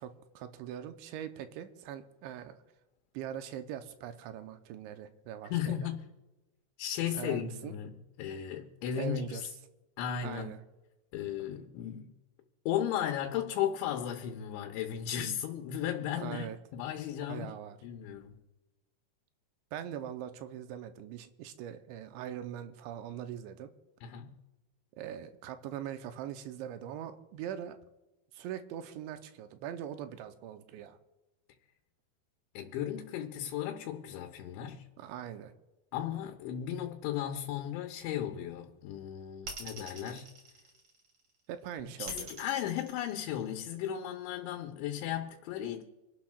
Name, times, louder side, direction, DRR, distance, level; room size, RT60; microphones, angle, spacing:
voice 1, 0.0-2.6 3.1-5.9 7.1-7.7 9.0-9.5 10.2-10.6 16.1-16.6 17.3-17.8 19.7-23.7 25.0-27.8 28.3-31.0 35.0-35.5 41.5-42.3, right 10 dB, 90° right, 3.0 m, -41 dB
voice 2, 5.5-6.0 6.8-9.5 10.0-10.5 11.1-12.1 12.7-16.5 16.7-17.5 17.8-18.4 24.0-24.4 32.5-34.8 35.9-40.3 41.8-45.8, left 10 dB, 85° left, 3.3 m, -35 dB
sound 1, 39.4-41.2 42.1-43.8, right 2 dB, 35° right, 3.2 m, -44 dB
27.5 x 12.0 x 2.4 m
omnidirectional pair, 5.2 m